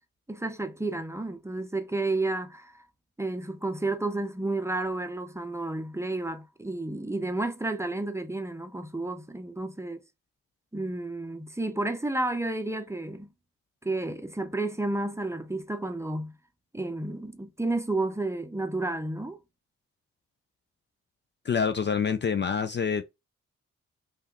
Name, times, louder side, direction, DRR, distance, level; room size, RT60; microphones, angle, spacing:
voice 1, 0.3-2.7 3.2-10.0 10.7-13.3 13.8-16.3 16.7-19.4, right 2 dB, 10° right, 0.6 m, -31 dB
voice 2, 21.4-23.0, left 6 dB, 35° left, 0.4 m, -26 dB
3.3 x 2.3 x 3.0 m
hypercardioid pair, 45°, 33 cm